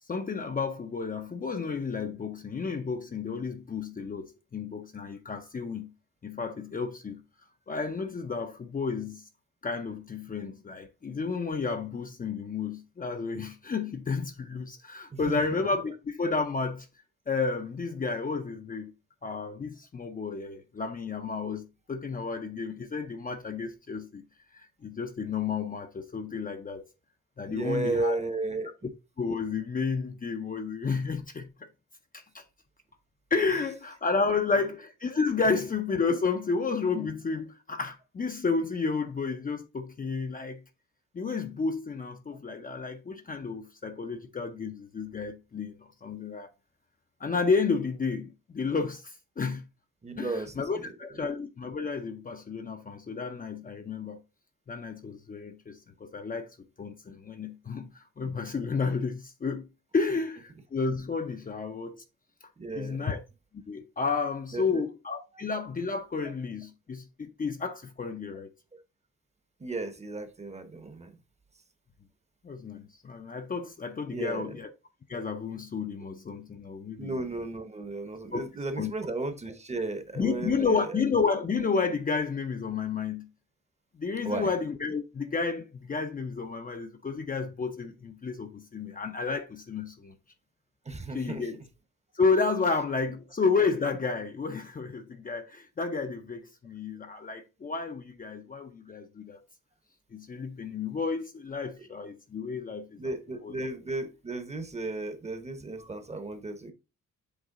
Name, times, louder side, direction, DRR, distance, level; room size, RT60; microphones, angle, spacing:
voice 1, 0.1-5.9 6.2-7.2 7.7-9.2 9.6-16.9 17.3-18.9 19.2-24.2 24.5-26.9 27.4-28.2 29.2-31.5 32.1-32.4 33.3-40.6 41.1-46.5 47.2-49.7 50.2-54.2 54.7-56.5 56.8-57.9 58.2-59.6 59.9-62.0 62.8-63.2 63.7-68.5 72.4-74.7 75.1-77.1 78.3-78.4 78.8-78.9 80.2-83.3 84.0-90.1 91.1-91.6 92.1-99.4 100.1-103.1 103.4-103.5, left 4 dB, 30° left, 0.6 m, -31 dB
voice 2, 15.1-15.4 27.5-28.7 50.0-50.9 62.6-63.1 64.5-64.8 69.6-71.2 74.1-74.5 77.0-80.8 84.2-84.5 90.9-91.5 103.0-106.7, right 2 dB, 20° right, 0.8 m, -34 dB
8.0 x 3.2 x 3.7 m
wide cardioid pair, 135°, 31 cm